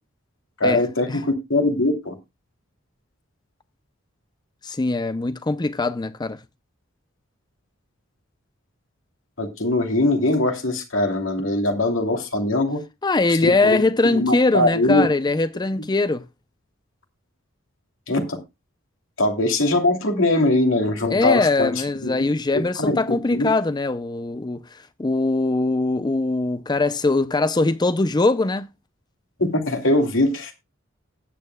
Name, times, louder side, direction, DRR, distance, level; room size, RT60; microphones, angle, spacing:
voice 1, 0.6-1.2 1.5-2.1 9.4-12.8 13.4-15.1 18.1-18.4 19.2-21.7 22.0-22.1 22.5-23.5 29.4-30.6, left 2 dB, 70° left, 2.6 m, -21 dB
voice 2, 4.6-6.4 13.0-16.2 21.1-28.7, left 3 dB, 20° left, 0.5 m, -22 dB
19.0 x 8.6 x 2.2 m
head